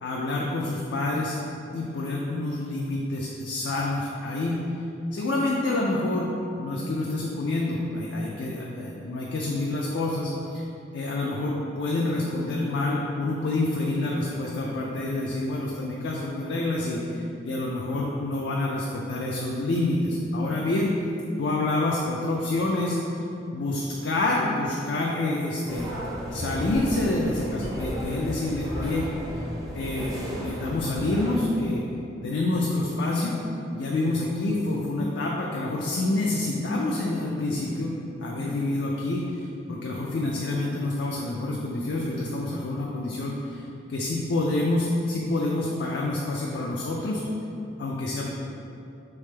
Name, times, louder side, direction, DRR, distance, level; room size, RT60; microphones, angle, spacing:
voice 1, 0.0-1.4 1.7-4.6 5.1-10.6 10.9-20.9 21.4-23.0 23.5-25.9 26.3-29.1 29.7-31.8 32.2-33.4 33.7-37.9 38.2-47.2 47.8-48.3, left 2 dB, 65° left, -2 dB, 0.4 m, -27 dB
sound 1, 25.7-31.4, equal, 20° right, 0.6 m, -33 dB
3.6 x 3.4 x 3.2 m, 2.8 s
head